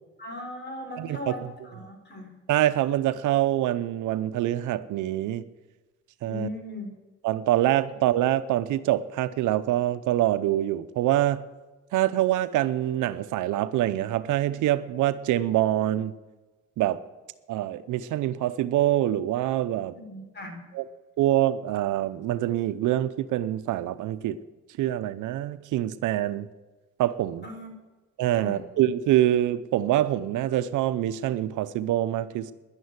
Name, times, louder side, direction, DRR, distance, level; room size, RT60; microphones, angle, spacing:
voice 1, 0.2-2.3 6.2-6.9 20.1-20.6 27.4-27.7 28.3-28.6, left 2 dB, 35° left, 4 dB, 4.3 m, -38 dB
voice 2, 1.0-1.5 2.5-5.5 6.2-6.5 7.2-11.4 11.9-16.1 16.8-17.0 17.5-19.9 20.7-20.8 21.2-24.4 24.8-26.5 27.0-27.5 28.2-32.5, right 13 dB, 85° right, 13 dB, 0.7 m, -25 dB
11.0 x 10.5 x 9.6 m, 1.2 s
cardioid pair, 90°, 30 cm